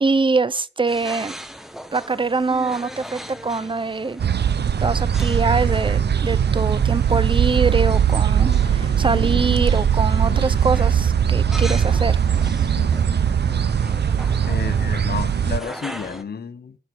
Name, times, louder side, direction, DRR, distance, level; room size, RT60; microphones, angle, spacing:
voice 1, 0.0-1.3 1.9-4.2 4.8-12.2, right 4 dB, 30° right, 0.5 m, -23 dB
sound 1, 0.9-16.2, equal, ahead, 1.2 m, -40 dB
sound 2, 2.5-15.8, left 3 dB, 85° left, 2.8 m, -42 dB
sound 3, 4.2-15.6, right 8 dB, 70° right, 0.7 m, -20 dB
voice 2, 14.5-16.8, left 6 dB, 65° left, 0.7 m, -31 dB
12.0 x 4.5 x 7.8 m
wide cardioid pair, 90°, 18 cm